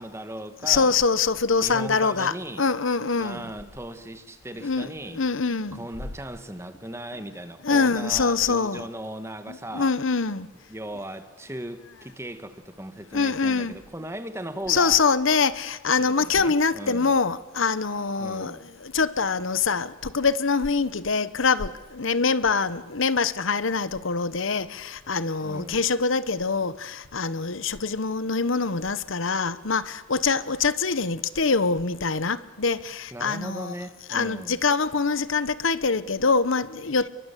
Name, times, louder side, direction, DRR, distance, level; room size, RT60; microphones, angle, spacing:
voice 1, 0.0-0.9 1.6-2.6 3.2-5.2 5.7-9.9 10.7-15.0 16.0-17.1 18.2-18.7 25.4-25.8 33.1-34.6, right 1 dB, 15° right, 1.6 m, -37 dB
voice 2, 0.6-3.4 4.6-5.8 7.6-8.9 9.5-10.5 13.1-13.7 14.7-33.7 34.1-37.1, left 4 dB, 75° left, 1.0 m, -24 dB
29.5 x 22.5 x 8.4 m
head